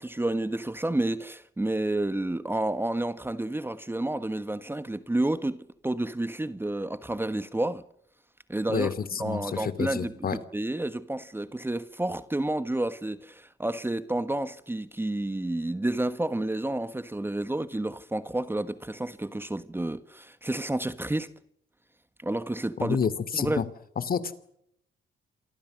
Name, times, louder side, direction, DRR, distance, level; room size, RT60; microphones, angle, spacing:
voice 1, 0.0-7.8 8.5-21.3 22.2-23.0 23.3-23.6, right 1 dB, 10° right, 1.4 m, -30 dB
voice 2, 8.7-10.4 22.8-23.7 24.0-24.4, left 6 dB, 50° left, 2.7 m, -29 dB
28.0 x 24.5 x 6.4 m
cardioid pair, 90°, 20 cm